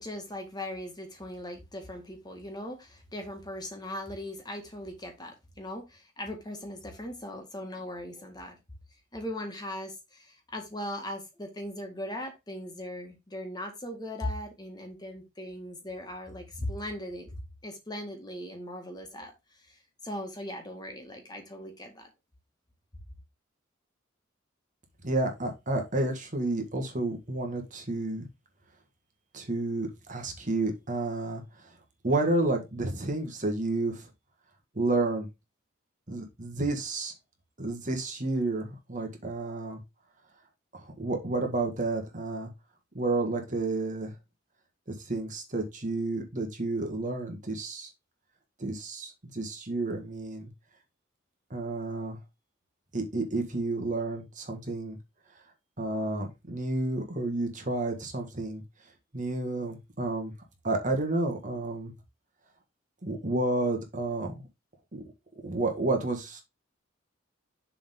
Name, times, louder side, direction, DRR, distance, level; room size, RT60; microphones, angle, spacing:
voice 1, 0.0-8.6 9.1-17.3 17.6-19.3 19.7-22.1, left 1 dB, 20° left, 1.8 m, -39 dB
voice 2, 25.0-28.3 29.3-31.4 32.0-34.1 34.8-35.3 36.1-37.1 37.6-39.8 40.7-42.5 42.9-44.1 44.9-47.9 48.6-50.5 51.5-52.2 52.9-55.0 55.8-58.6 59.1-60.3 60.6-61.9 63.0-64.3 64.9-65.0 65.4-66.4, right 2 dB, 40° right, 1.8 m, -30 dB
6.9 x 3.8 x 5.2 m
head